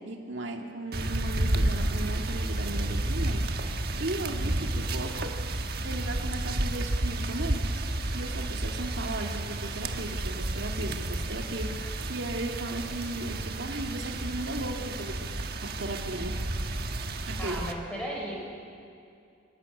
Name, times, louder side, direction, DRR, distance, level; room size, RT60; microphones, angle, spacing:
voice 1, 0.0-5.3 5.8-7.7 8.1-16.4 17.3-17.6, right 1 dB, 70° right, 2 dB, 2.2 m, -36 dB
sound 1, 0.9-17.7, right 1 dB, 50° right, 1.4 m, -31 dB
voice 2, 17.4-18.3, right 1 dB, 5° left, -3 dB, 5.8 m, -35 dB
25.5 x 18.0 x 9.6 m, 2.4 s
head